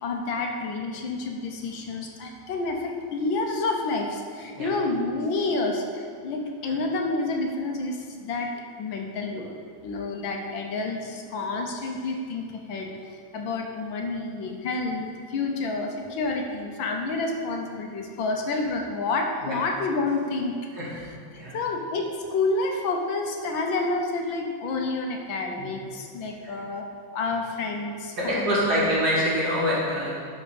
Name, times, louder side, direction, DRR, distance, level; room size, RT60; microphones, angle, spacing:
voice 1, 0.0-9.6 9.8-20.5 21.0-26.8 27.1-28.9, left 3 dB, 70° left, 2 dB, 1.5 m, -29 dB
voice 2, 28.2-30.2, equal, 50° right, -7 dB, 2.8 m, -25 dB
11.5 x 5.3 x 5.1 m, 2.1 s
omnidirectional pair, 2.3 m